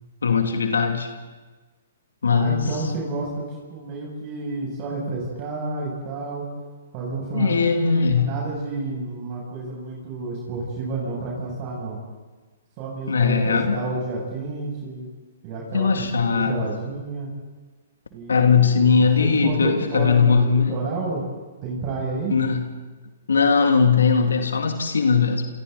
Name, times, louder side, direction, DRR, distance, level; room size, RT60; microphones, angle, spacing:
voice 1, 0.2-1.1 2.2-2.7 7.3-8.4 13.1-13.8 15.7-16.6 18.3-20.8 22.3-22.7 23.3-25.5, left 5 dB, 75° left, 5 dB, 2.6 m, -19 dB
voice 2, 2.3-3.4 3.7-6.4 6.9-12.0 12.8-15.1 15.4-17.3 18.1-21.2 21.6-22.3, right 3 dB, 40° right, -3 dB, 7.4 m, -30 dB
29.0 x 27.5 x 4.1 m, 1.3 s
hypercardioid pair, 125°, 0 cm